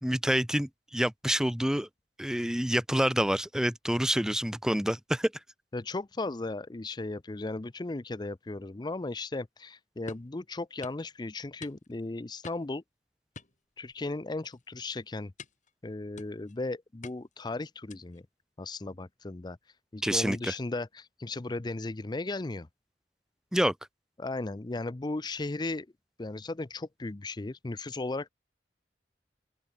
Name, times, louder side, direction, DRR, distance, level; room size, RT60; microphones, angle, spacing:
voice 1, 0.0-1.9 2.2-5.3 20.0-20.5 23.5-23.7, equal, 5° right, 0.8 m, -27 dB
voice 2, 5.7-12.8 13.8-15.3 15.8-18.2 18.6-19.6 19.9-22.7 24.2-25.9 26.2-28.3, left 2 dB, 25° left, 0.5 m, -36 dB
sound 1, 10.1-10.3 10.8-11.1 11.6-12.0 12.4-12.8 13.3-14.1 14.4-14.7 15.4-15.7 16.2-16.6 17.0-17.4 17.9-18.2, left 3 dB, 45° left, 5.1 m, -48 dB
open air
head